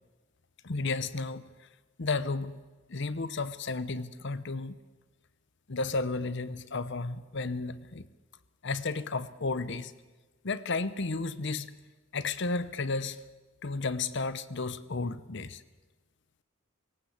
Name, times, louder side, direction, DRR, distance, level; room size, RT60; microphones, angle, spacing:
voice 1, 0.6-1.4 2.0-2.6 2.9-4.8 5.7-8.0 8.6-9.9 10.4-11.8 12.1-13.2 13.6-15.6, left 3 dB, 60° left, 15 dB, 0.8 m, -33 dB
20.5 x 18.0 x 8.1 m, 1.2 s
head